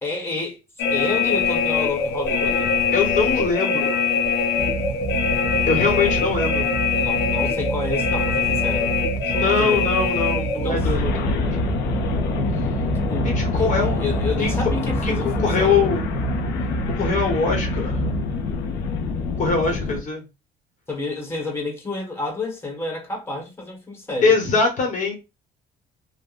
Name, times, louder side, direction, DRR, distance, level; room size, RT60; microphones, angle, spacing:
voice 1, 0.0-0.6 0.9-2.8 6.0-6.3 6.9-8.9 9.2-9.9 10.5-10.9 13.1-15.9 19.7-19.8 20.9-24.3, left 3 dB, 15° left, 1.2 m, -30 dB
sound 1, 0.8-20.0, left 5 dB, 85° left, 0.6 m, -24 dB
voice 2, 2.9-4.0 5.7-6.6 9.3-11.5 13.2-14.0 14.4-14.5 15.0-16.0 16.9-18.0 19.4-20.2 24.2-25.2, left 4 dB, 50° left, 0.9 m, -22 dB
sound 2, 4.6-18.2, right 5 dB, 50° right, 1.4 m, -29 dB
3.5 x 2.1 x 2.3 m
cardioid pair, 110°, 17 cm